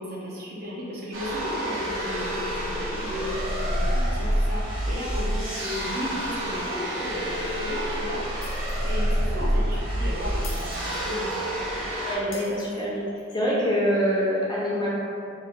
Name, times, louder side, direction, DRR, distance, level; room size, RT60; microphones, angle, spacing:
voice 1, 0.0-11.5, left 1 dB, 50° right, -6 dB, 0.6 m, -34 dB
sound 1, 1.1-12.1, equal, 85° right, 1.0 m, -28 dB
Shatter, 8.4-9.0 9.3-9.4 10.4-11.5 12.3-13.3, left 3 dB, 80° left, 0.7 m, -44 dB
voice 2, 12.0-13.0 13.3-14.9, equal, 20° left, -8 dB, 0.6 m, -25 dB
2.7 x 2.5 x 3.5 m, 2.4 s
head